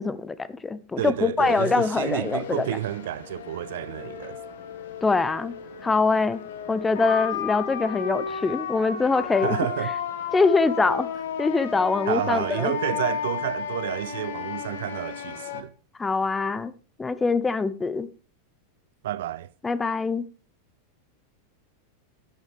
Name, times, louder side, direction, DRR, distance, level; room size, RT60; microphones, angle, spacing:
voice 1, 0.0-2.7 5.0-5.5 5.8-6.4 6.7-9.6 10.3-11.1 11.4-12.7 16.0-16.7 17.0-18.1 19.6-20.2, left 4 dB, 15° left, 0.7 m, -23 dB
voice 2, 1.0-4.4 9.4-9.9 12.1-15.7 19.0-19.5, right 13 dB, 65° right, 0.4 m, -30 dB
sound 1, 1.4-15.6, left 8 dB, 70° left, 1.5 m, -34 dB
11.0 x 9.2 x 3.4 m
hypercardioid pair, 90°, 0 cm